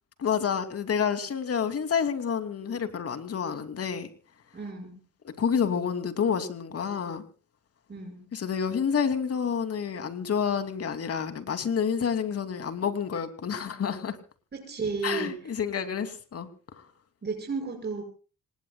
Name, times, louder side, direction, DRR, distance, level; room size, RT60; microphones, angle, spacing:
voice 1, 0.2-4.1 5.2-7.2 8.3-14.2 15.0-16.5 16.7-16.8, left 7 dB, 50° left, 9 dB, 2.9 m, -29 dB
voice 2, 4.5-5.0 7.9-8.3 14.5-15.5 17.2-18.0, right 4 dB, 35° right, 1 dB, 6.3 m, -33 dB
27.0 x 19.5 x 2.4 m, 0.37 s
cardioid pair, 90°, 30 cm